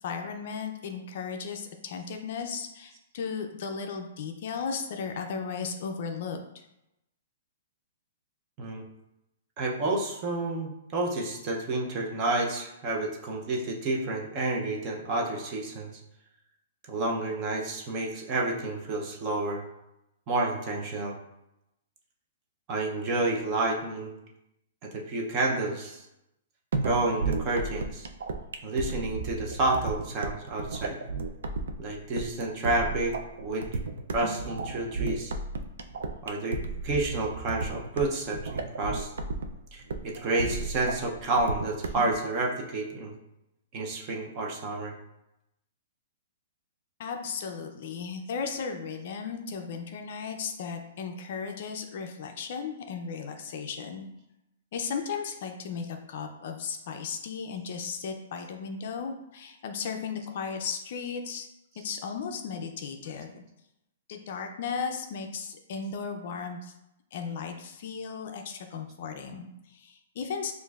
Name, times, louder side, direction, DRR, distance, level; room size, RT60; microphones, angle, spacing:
voice 1, 0.0-6.6 47.0-54.1 54.7-61.5 61.8-63.4 64.1-66.7 67.1-70.5, left 6 dB, 40° left, 4 dB, 0.4 m, -35 dB
voice 2, 9.6-16.0 16.9-19.6 20.3-21.1 22.7-24.1 24.8-26.1 26.8-28.1 28.6-31.0 31.8-33.2 33.4-33.8 34.1-35.3 36.2-39.1 39.7-43.1 43.7-44.9, right 2 dB, 20° right, 0 dB, 0.5 m, -30 dB
sound 1, 26.7-42.1, right 4 dB, 85° right, 0.5 m, -33 dB
6.5 x 2.5 x 2.4 m, 0.87 s
hypercardioid pair, 175°, 0 cm